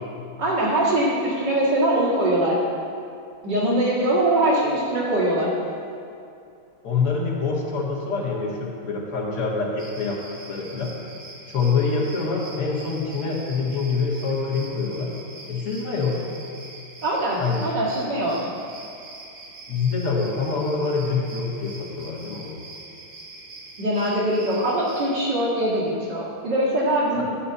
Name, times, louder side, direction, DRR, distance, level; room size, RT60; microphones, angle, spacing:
voice 1, 0.4-2.6 3.4-5.5 17.0-18.4 23.8-27.4, right 1 dB, 50° right, -7 dB, 2.7 m, -22 dB
voice 2, 6.8-10.2 10.5-10.9 11.5-15.1 15.5-16.2 17.4-17.6 19.7-22.5 27.2-27.3, left 4 dB, 90° left, -4 dB, 2.7 m, -25 dB
sound 1, 9.8-25.2, right 2 dB, 30° right, 1.9 m, -43 dB
11.5 x 4.3 x 8.1 m, 2.5 s
omnidirectional pair, 2.4 m